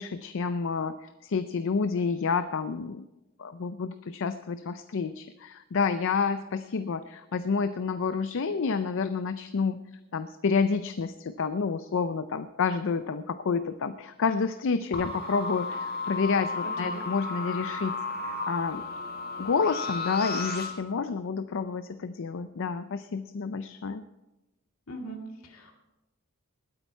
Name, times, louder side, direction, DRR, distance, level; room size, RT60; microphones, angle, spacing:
voice 1, 0.0-3.0 3.4-9.8 10.1-17.9 18.3-18.8 19.4-24.0, left 5 dB, 65° left, 11 dB, 0.5 m, -29 dB
sound 1, 14.9-20.7, left 3 dB, 50° left, 2.0 m, -33 dB
voice 2, 16.6-17.0 24.9-25.2 25.4-25.7, right 1 dB, 80° left, 2 dB, 2.3 m, -40 dB
20.0 x 8.7 x 4.5 m, 1.0 s
head